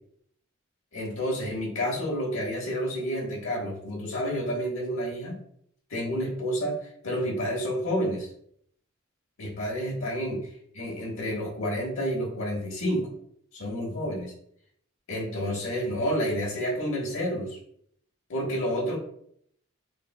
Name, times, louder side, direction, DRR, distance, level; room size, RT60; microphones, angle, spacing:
voice 1, 0.9-5.4 5.9-6.8 7.0-8.3 9.4-10.5 10.7-13.1 13.5-14.3 15.1-17.6 18.3-19.0, equal, 90° left, -3 dB, 1.1 m, -29 dB
6.4 x 2.2 x 2.3 m, 0.67 s
head